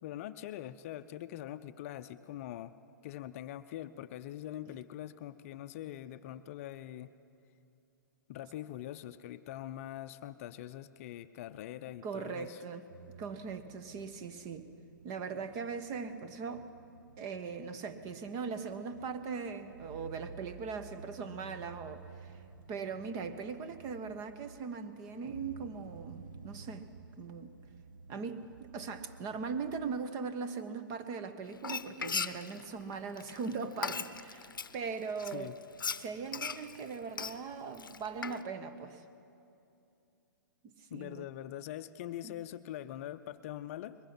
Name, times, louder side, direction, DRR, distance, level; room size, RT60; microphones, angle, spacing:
voice 1, 0.0-2.7 3.0-7.1 8.3-12.6 35.2-35.6 40.9-44.0, left 12 dB, 40° left, 12 dB, 0.6 m, -43 dB
voice 2, 12.0-12.9 13.2-14.7 15.0-16.7 17.2-22.3 22.7-26.8 27.2-27.5 28.1-35.5 36.0-39.0 40.6-41.3, right 5 dB, 30° right, 10 dB, 1.2 m, -40 dB
sound 1, 12.9-29.9, right 4 dB, 70° right, 1.0 m, -53 dB
Frying (food), 31.5-34.7 35.2-38.4, left 5 dB, 80° left, 0.7 m, -38 dB
22.0 x 20.5 x 5.9 m, 2.7 s
figure-of-eight pair, 120°, 11 cm